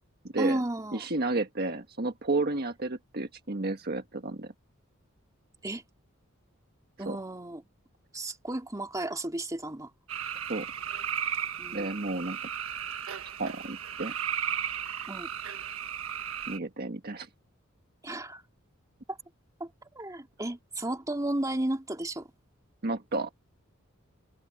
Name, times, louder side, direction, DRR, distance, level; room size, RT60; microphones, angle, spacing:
voice 1, 0.4-1.1 5.6-5.8 7.0-7.6 8.1-9.9 11.6-11.9 15.1-15.3 18.0-18.4 19.1-19.2 19.6-19.7 19.9-22.3, right 1 dB, 15° right, 2.5 m, -33 dB
voice 2, 0.9-4.5 7.1-7.2 10.5-10.7 11.7-12.4 13.4-14.1 16.5-17.3 22.8-23.3, right 2 dB, 50° right, 1.5 m, -31 dB
sound 1, 10.1-16.6, right 9 dB, 85° right, 1.4 m, -35 dB
head